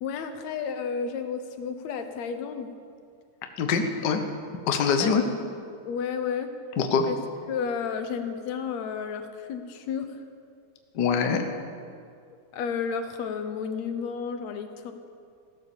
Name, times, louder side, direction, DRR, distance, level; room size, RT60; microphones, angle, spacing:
voice 1, 0.0-2.7 5.0-5.1 5.9-6.5 7.1-7.2 7.5-10.2 12.5-14.9, left 6 dB, 70° left, 8 dB, 2.2 m, -32 dB
voice 2, 3.6-4.2 4.7-5.2 6.8-7.1 10.9-11.4, left 6 dB, 55° left, 5 dB, 1.2 m, -23 dB
16.0 x 12.5 x 7.2 m, 2.3 s
omnidirectional pair, 3.3 m